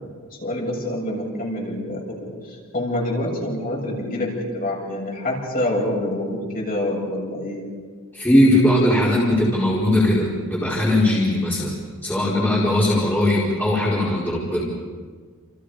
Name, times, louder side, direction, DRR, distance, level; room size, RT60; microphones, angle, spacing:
voice 1, 0.4-2.2 2.4-7.6, left 1 dB, 40° left, -3 dB, 7.8 m, -26 dB
voice 2, 8.1-14.7, left 1 dB, 10° left, -7 dB, 4.8 m, -19 dB
29.5 x 28.5 x 5.1 m, 1.5 s
head